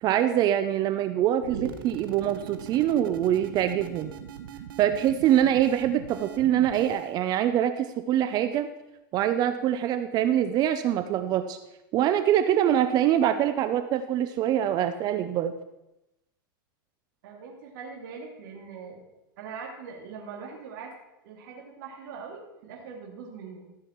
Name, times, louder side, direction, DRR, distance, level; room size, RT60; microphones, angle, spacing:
voice 1, 0.0-4.1 4.8-8.7 9.1-11.6 11.9-15.5, right 11 dB, 35° right, 10 dB, 0.6 m, -24 dB
sound 1, 1.4-7.2, right 8 dB, 85° right, 1.2 m, -41 dB
voice 2, 17.2-19.1 19.4-20.9 21.2-23.6, right 5 dB, 65° right, 0 dB, 2.7 m, -42 dB
14.5 x 7.6 x 4.6 m, 0.92 s
supercardioid pair, 135°, 12 cm